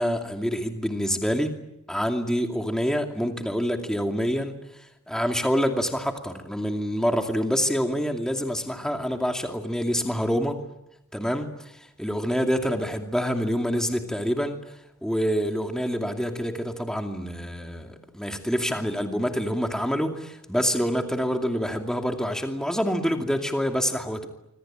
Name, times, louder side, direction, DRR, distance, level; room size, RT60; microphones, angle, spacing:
voice 1, 0.0-1.5 1.9-4.6 5.1-10.6 11.1-14.6 15.0-24.3, equal, 5° left, 4 dB, 2.5 m, -26 dB
26.5 x 25.0 x 8.9 m, 0.89 s
head